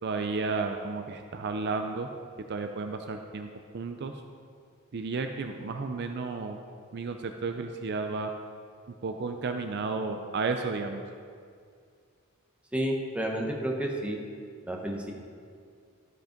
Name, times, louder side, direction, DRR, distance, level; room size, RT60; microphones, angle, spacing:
voice 1, 0.0-2.1 2.5-3.5 3.7-4.1 4.9-6.6 6.9-8.3 9.0-11.0, right 4 dB, 50° right, 6 dB, 0.4 m, -32 dB
voice 2, 12.7-14.2 14.6-15.1, right 1 dB, 5° right, 0 dB, 0.9 m, -30 dB
12.0 x 5.3 x 5.1 m, 2.2 s
head